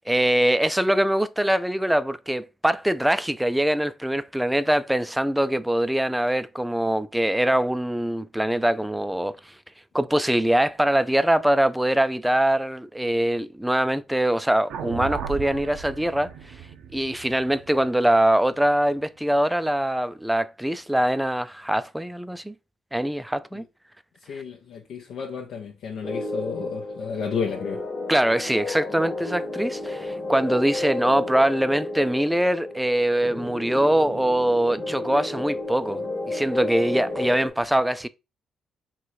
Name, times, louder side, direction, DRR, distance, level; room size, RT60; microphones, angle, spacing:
voice 1, 0.0-9.4 9.9-16.3 16.9-22.5 22.9-23.6 28.1-36.0 36.3-38.1, right 1 dB, 5° right, 0.3 m, -23 dB
sound 1, 14.7-19.0, right 7 dB, 80° right, 0.5 m, -36 dB
voice 2, 24.3-27.8, left 6 dB, 75° left, 0.6 m, -32 dB
sound 2, 26.0-37.5, left 2 dB, 30° left, 1.1 m, -32 dB
3.0 x 2.9 x 4.5 m
cardioid pair, 90°, 0 cm